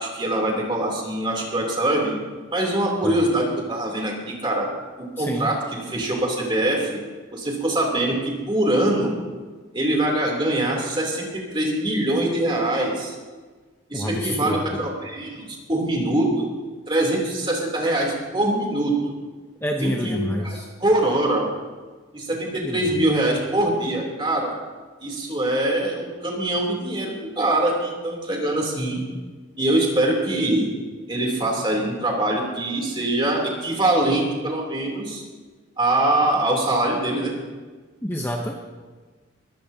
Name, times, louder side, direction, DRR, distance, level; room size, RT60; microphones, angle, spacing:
voice 1, 0.0-2.1 2.5-4.7 5.0-7.0 7.3-9.1 9.7-13.1 13.9-16.5 16.9-19.2 19.8-21.5 22.1-24.5 25.0-29.0 29.6-30.7 31.1-35.2 35.8-37.3, right 1 dB, 25° right, -1 dB, 3.2 m, -23 dB
voice 2, 5.2-5.5 13.9-14.8 19.6-20.7 22.6-22.8 38.0-38.5, equal, 10° left, 1 dB, 0.8 m, -27 dB
21.0 x 15.5 x 2.8 m, 1.4 s
head